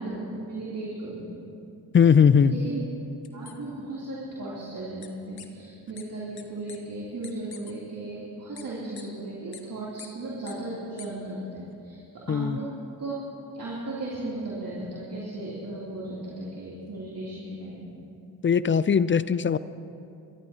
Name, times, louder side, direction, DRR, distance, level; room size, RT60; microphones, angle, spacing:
voice 1, 0.0-1.4 2.4-2.8 3.3-12.7 13.0-13.3 13.5-17.8, right 2 dB, 50° right, -7 dB, 3.3 m, -36 dB
voice 2, 1.9-2.5 12.3-12.6 18.4-19.6, left 7 dB, 30° left, 16 dB, 0.4 m, -19 dB
sound 1, 3.2-3.5 5.0-5.1 5.4-5.5 6.0-6.1 6.4-6.5 6.7-6.8 7.2-7.7 8.6-8.7 9.0-9.1 9.5-9.6 10.0-10.1 10.5-10.6 11.0-11.1, left 8 dB, 55° left, 1.2 m, -44 dB
24.5 x 13.0 x 2.9 m, 2.6 s
supercardioid pair, 50°, 44 cm